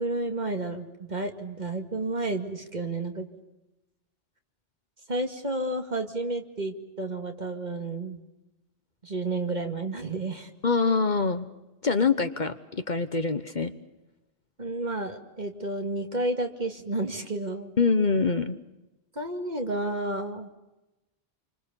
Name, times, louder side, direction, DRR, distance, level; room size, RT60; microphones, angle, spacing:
voice 1, 0.0-3.3 5.1-8.2 9.0-10.5 14.6-17.7 19.2-20.5, right 2 dB, 40° right, 4 dB, 2.3 m, -31 dB
voice 2, 10.6-11.5 11.8-13.7 17.8-18.6, left 4 dB, 45° left, 10 dB, 1.1 m, -24 dB
28.5 x 25.0 x 7.0 m, 1.0 s
omnidirectional pair, 1.1 m